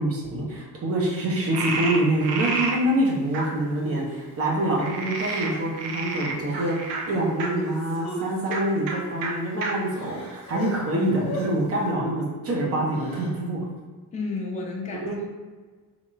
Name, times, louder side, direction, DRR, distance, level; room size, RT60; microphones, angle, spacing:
voice 1, 0.0-6.8 7.1-13.7 15.0-15.2, right 1 dB, 30° right, -3 dB, 0.8 m, -25 dB
Frog, 1.5-2.8 3.3-3.4 4.7-7.5 8.4-8.6 8.9-9.0 9.2-9.3 9.6-9.7 10.3-11.1, right 4 dB, 55° right, 0.6 m, -30 dB
Crying sobbing, 3.3-3.4 3.9-4.1 5.1-5.8 6.4-6.7 7.1-8.8 9.4-9.5 9.8-10.7 11.2-11.5 12.8-13.3, equal, 30° left, 0.9 m, -37 dB
voice 2, 14.1-15.3, left 3 dB, 15° left, 0 dB, 0.4 m, -32 dB
2.9 x 2.5 x 2.2 m, 1.4 s
figure-of-eight pair, 45°, 47 cm